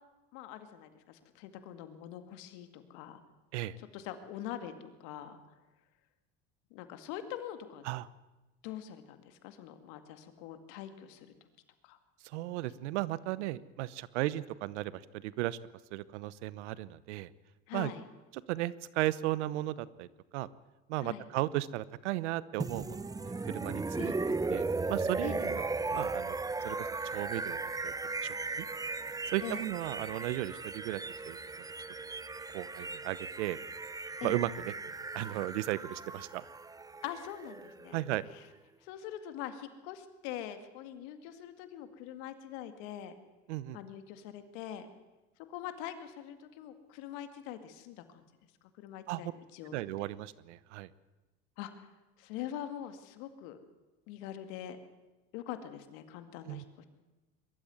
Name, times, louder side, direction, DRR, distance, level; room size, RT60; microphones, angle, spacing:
voice 1, 0.3-3.2 3.8-5.4 6.7-7.8 8.6-11.3 11.8-12.0 13.4-13.6 17.7-18.0 21.0-21.2 24.0-24.2 25.2-25.5 29.4-29.7 34.2-34.4 37.0-38.0 38.3-38.4 38.8-43.1 43.7-44.9 45.4-48.2 48.8-50.1 51.6-51.9 52.2-53.6 54.1-54.8 55.3-56.9, left 11 dB, 75° left, 9 dB, 2.2 m, -43 dB
voice 2, 12.2-15.6 15.9-17.3 17.7-17.9 18.5-20.1 20.3-20.5 20.9-25.6 25.9-26.4 26.6-26.9 27.1-27.9 28.2-28.7 29.3-31.4 32.5-33.6 34.2-34.7 35.1-36.4 37.9-38.2 43.5-43.8 49.1-49.3 49.7-50.9 56.5-56.6, right 16 dB, 80° right, 19 dB, 0.9 m, -35 dB
sound 1, 22.6-38.5, right 3 dB, 10° right, 0.7 m, -37 dB
22.0 x 13.5 x 9.5 m, 1.1 s
supercardioid pair, 90°, 34 cm